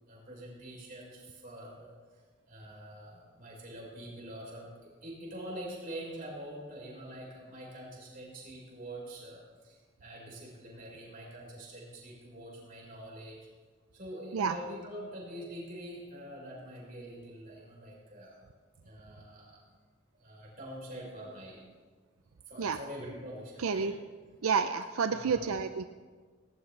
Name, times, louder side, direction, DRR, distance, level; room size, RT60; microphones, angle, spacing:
voice 1, 0.1-13.5 13.9-18.4 18.8-19.6 20.1-21.6 22.5-23.9 25.1-25.7, right 1 dB, 40° right, -3 dB, 4.9 m, -45 dB
voice 2, 23.6-23.9 24.4-25.8, right 5 dB, 90° right, 9 dB, 0.5 m, -29 dB
18.5 x 17.5 x 3.3 m, 1.5 s
head